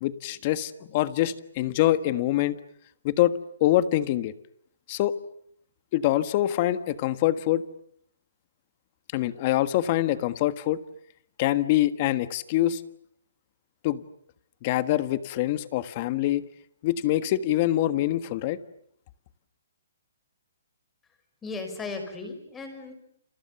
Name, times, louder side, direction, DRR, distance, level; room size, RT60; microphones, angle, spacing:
voice 1, 0.0-2.6 3.0-3.3 3.6-4.3 4.9-5.1 5.9-7.6 9.1-10.8 11.4-12.8 13.8-14.0 14.6-16.4 16.8-18.6, left 14 dB, 30° left, 13 dB, 1.5 m, -24 dB
voice 2, 21.4-22.9, left 3 dB, 10° left, 6 dB, 5.5 m, -36 dB
30.0 x 28.0 x 7.0 m, 0.69 s
hypercardioid pair, 165°, 0 cm